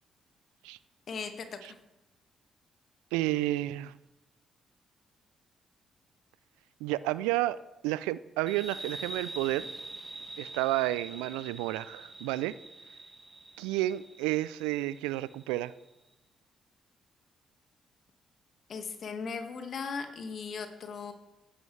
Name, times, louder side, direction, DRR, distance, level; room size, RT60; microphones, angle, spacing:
voice 1, 1.1-1.5 18.7-21.1, left 5 dB, 60° left, 1.7 m, -37 dB
voice 2, 3.1-3.9 6.8-9.7 10.4-12.6 13.6-15.7, right 16 dB, 80° right, 0.3 m, -31 dB
sound 1, 8.5-15.7, right 2 dB, 20° right, 1.9 m, -45 dB
16.0 x 11.0 x 3.3 m
hypercardioid pair, 40°, 0 cm